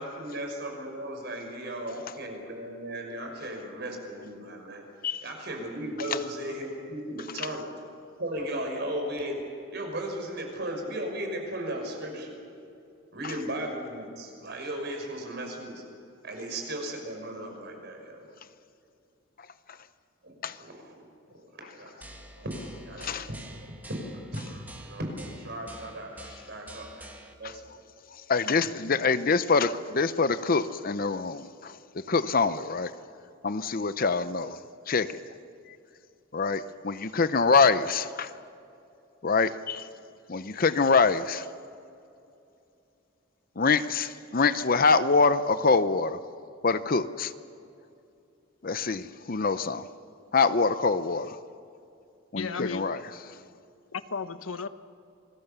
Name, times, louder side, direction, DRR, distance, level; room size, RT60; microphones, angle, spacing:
voice 1, 0.0-4.8 5.2-7.7 8.2-9.4 9.7-12.3 13.1-15.8 16.2-18.3 20.2-27.8 28.9-29.0, right 1 dB, 55° right, 5.7 m, -36 dB
sound 1, 22.0-27.3, right 1 dB, 10° right, 2.0 m, -47 dB
voice 2, 28.3-32.9 33.4-34.6 34.9-35.2 36.3-38.3 39.2-39.9 40.3-41.5 43.6-46.2 46.6-47.3 48.6-49.9 50.3-51.4 52.3-53.0, left 4 dB, 45° left, 0.7 m, -25 dB
voice 3, 52.4-52.9 53.9-54.7, left 5 dB, 85° left, 1.1 m, -34 dB
28.0 x 21.0 x 6.9 m
head